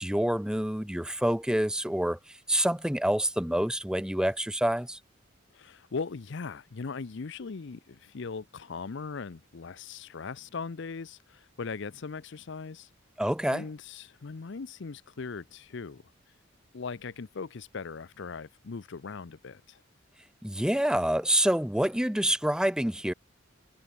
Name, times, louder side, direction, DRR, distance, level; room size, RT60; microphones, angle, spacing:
voice 1, 0.0-2.2 2.5-5.0 13.2-13.6 20.4-23.1, right 1 dB, 5° right, 0.8 m, -27 dB
voice 2, 5.5-12.9 13.5-16.0 16.7-19.8, left 4 dB, 65° left, 0.6 m, -39 dB
head